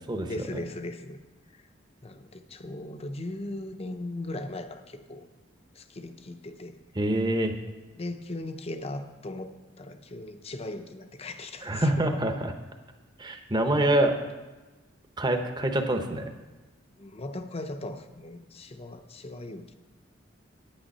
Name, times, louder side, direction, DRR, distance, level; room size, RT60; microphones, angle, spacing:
voice 1, 0.3-1.2 1.5-1.6 2.0-5.3 5.7-6.8 8.0-12.0 17.0-19.7, left 2 dB, 35° left, 8 dB, 0.7 m, -38 dB
voice 2, 6.9-7.5 11.6-12.5 13.2-14.1 15.2-16.3, right 1 dB, 25° right, 6 dB, 0.9 m, -25 dB
9.1 x 9.0 x 5.4 m, 1.2 s
head